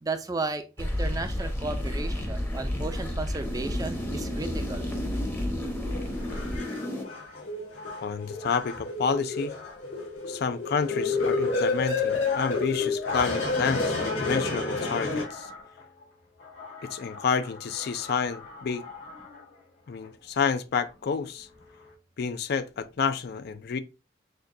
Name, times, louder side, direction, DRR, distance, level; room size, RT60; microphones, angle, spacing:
voice 1, 0.0-4.9, right 3 dB, 20° right, 0.4 m, -34 dB
sound 1, 0.8-7.0, left 1 dB, 10° left, 0.7 m, -31 dB
sound 2, 5.9-15.8 16.4-19.4 20.0-20.1, left 3 dB, 75° left, 2.4 m, -31 dB
voice 2, 8.0-9.6 10.2-15.5 16.8-18.9 19.9-21.5 22.2-23.8, left 5 dB, 55° left, 0.4 m, -29 dB
6.3 x 2.2 x 2.6 m
head